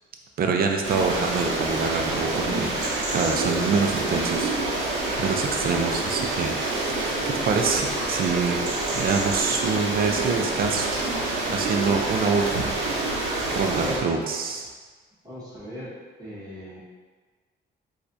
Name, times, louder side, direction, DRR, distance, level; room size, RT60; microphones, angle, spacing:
voice 1, 0.4-8.7 8.9-12.8 13.5-14.7, right 5 dB, 50° right, 3 dB, 0.5 m, -26 dB
sound 1, 0.8-14.0, right 2 dB, 85° right, 0.8 m, -27 dB
voice 2, 15.2-15.9 16.2-16.8, equal, 20° right, -10 dB, 1.3 m, -37 dB
4.1 x 2.4 x 2.6 m, 1.4 s
cardioid pair, 90°, 20 cm